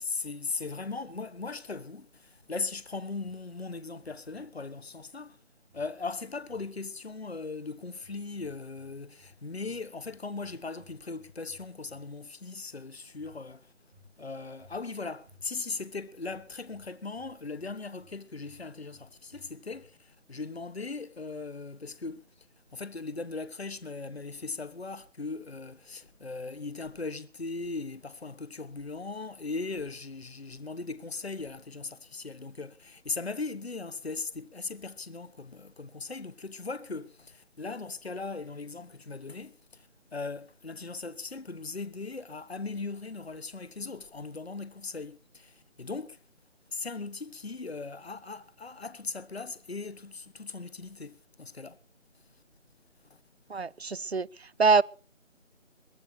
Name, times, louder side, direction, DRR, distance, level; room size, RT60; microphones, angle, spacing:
voice 1, 0.0-5.4 5.7-13.7 14.2-22.5 22.7-46.2 46.7-51.8 53.1-53.2, left 3 dB, 55° left, 1.3 m, -39 dB
sound 1, 3.2-3.7 4.0-4.4 5.7-6.7 7.9-8.9 9.2-12.2 13.2-13.4 13.9-14.2 14.6-14.8 15.3-15.4 16.2-17.7 18.0-19.9, left 2 dB, 10° right, 2.6 m, -59 dB
voice 2, 53.5-54.8, right 4 dB, 55° right, 0.6 m, -25 dB
22.5 x 17.5 x 2.8 m
figure-of-eight pair, 175°, 37 cm